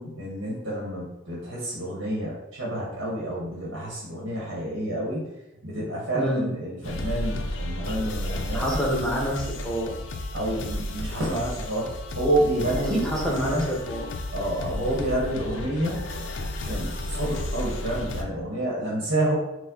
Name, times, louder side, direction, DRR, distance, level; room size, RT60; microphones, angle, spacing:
voice 1, 0.0-5.3 5.6-8.8 10.3-13.6 14.3-16.0 16.6-19.3, right 1 dB, 70° right, -5 dB, 1.3 m, -29 dB
voice 2, 6.1-6.5 8.5-9.9 12.9-14.0, equal, 5° left, -3 dB, 0.8 m, -27 dB
sound 1, 6.8-18.2, left 1 dB, 75° left, 0.5 m, -32 dB
5.3 x 2.1 x 3.9 m, 0.92 s
head